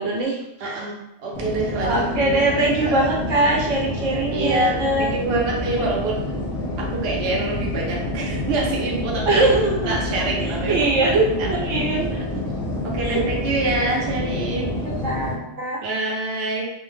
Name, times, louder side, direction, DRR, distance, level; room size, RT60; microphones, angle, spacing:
voice 1, 0.0-0.8 1.8-5.1 9.3-9.9 10.7-12.2 13.0-13.2 14.8-15.8, right 2 dB, 85° right, -2 dB, 1.1 m, -22 dB
voice 2, 0.6-2.3 2.9-3.1 4.3-6.2 6.8-9.4 9.9-10.8 11.0-12.3 12.8-14.8 15.8-16.6, right 2 dB, 65° right, -3 dB, 0.8 m, -26 dB
sound 1, 1.3-15.4, left 1 dB, 45° left, 0.5 m, -28 dB
2.5 x 2.1 x 3.2 m, 0.84 s
omnidirectional pair, 1.2 m